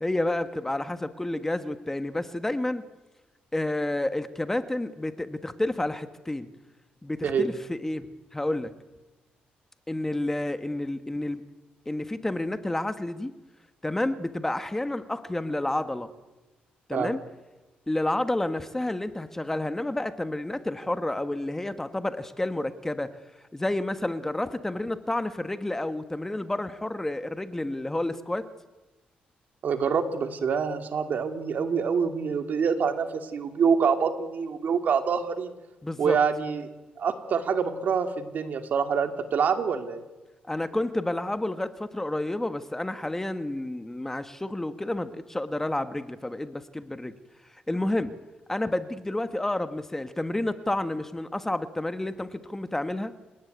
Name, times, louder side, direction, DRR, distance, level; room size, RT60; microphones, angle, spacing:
voice 1, 0.0-2.8 3.5-6.5 7.0-8.7 9.9-11.4 11.9-13.3 13.8-16.1 16.9-17.2 17.9-23.1 23.5-28.5 35.8-36.2 40.5-47.1 47.7-48.1 48.5-53.1, left 1 dB, 10° left, 10 dB, 1.4 m, -30 dB
voice 2, 29.6-35.5 36.0-36.6 37.0-40.0, right 6 dB, 60° right, 7 dB, 2.7 m, -26 dB
27.5 x 18.0 x 9.5 m, 1.1 s
cardioid pair, 105°, 3 cm